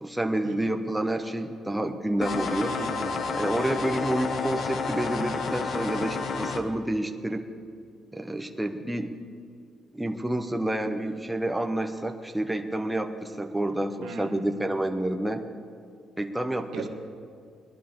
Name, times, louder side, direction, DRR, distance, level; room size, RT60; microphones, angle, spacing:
voice 1, 0.0-2.7 3.3-7.4 8.1-9.1 9.9-15.4 16.2-16.8, right 1 dB, 5° right, 5 dB, 0.8 m, -29 dB
sound 1, 2.2-6.6, left 4 dB, 55° left, 0.9 m, -30 dB
voice 2, 2.6-3.3 14.0-14.5 16.7-16.9, right 5 dB, 85° right, 5 dB, 1.2 m, -39 dB
19.0 x 11.5 x 3.7 m, 2.2 s
cardioid pair, 90°, 0 cm